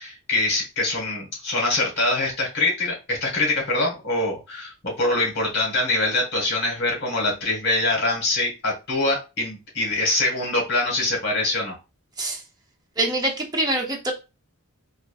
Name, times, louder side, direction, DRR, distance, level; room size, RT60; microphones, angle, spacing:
voice 1, 0.0-11.8, left 2 dB, 50° left, -1 dB, 1.4 m, -24 dB
voice 2, 13.0-14.1, right 1 dB, 15° right, 1 dB, 0.5 m, -24 dB
3.4 x 2.5 x 2.3 m, 0.28 s
head